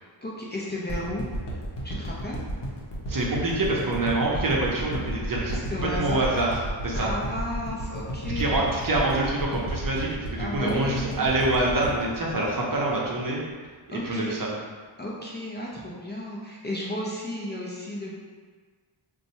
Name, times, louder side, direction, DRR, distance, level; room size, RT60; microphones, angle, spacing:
voice 1, 0.2-1.3 1.8-2.4 5.5-6.2 6.9-8.6 10.4-11.2 13.9-14.4 15.0-18.3, left 1 dB, 20° left, -5 dB, 0.5 m, -33 dB
sound 1, 0.9-13.2 13.6-13.7, right 1 dB, 60° left, 0.9 m, -32 dB
voice 2, 3.1-5.6 5.9-7.1 8.4-13.4 13.9-14.5, right 2 dB, 45° right, -3 dB, 0.7 m, -26 dB
2.6 x 2.3 x 4.1 m, 1.5 s
wide cardioid pair, 80°, 49 cm